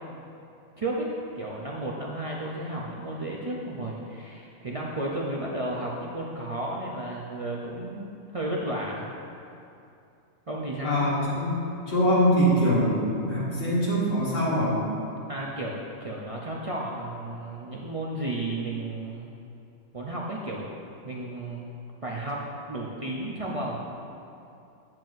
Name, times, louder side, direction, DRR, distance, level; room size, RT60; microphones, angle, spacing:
voice 1, 0.8-9.1 10.5-11.0 15.3-19.4 19.9-20.7 21.0-21.7 22.0-23.8, right 1 dB, 40° right, -3 dB, 0.5 m, -33 dB
voice 2, 10.8-14.8, equal, 90° left, -8 dB, 2.3 m, -23 dB
9.1 x 7.5 x 2.6 m, 2.6 s
omnidirectional pair, 1.3 m